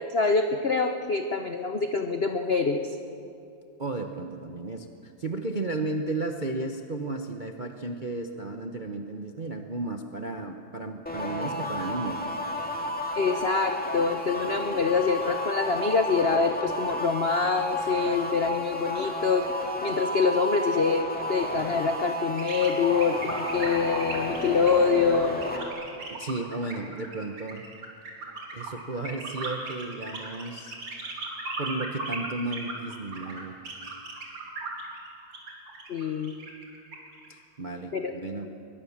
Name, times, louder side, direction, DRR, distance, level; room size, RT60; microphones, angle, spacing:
voice 1, 0.0-2.8 13.1-19.5 19.8-25.4 35.9-36.3 37.9-38.1, left 5 dB, 65° left, 6 dB, 0.6 m, -25 dB
voice 2, 3.8-12.2 26.1-27.6 28.5-30.8 31.6-33.6 37.3-38.5, right 2 dB, 50° right, 4 dB, 0.5 m, -34 dB
sound 1, 11.1-25.7, left 1 dB, 5° left, 2.0 m, -32 dB
sound 2, 22.4-37.3, right 3 dB, 75° right, 3.8 m, -37 dB
21.5 x 21.0 x 7.3 m, 2.6 s
omnidirectional pair, 2.4 m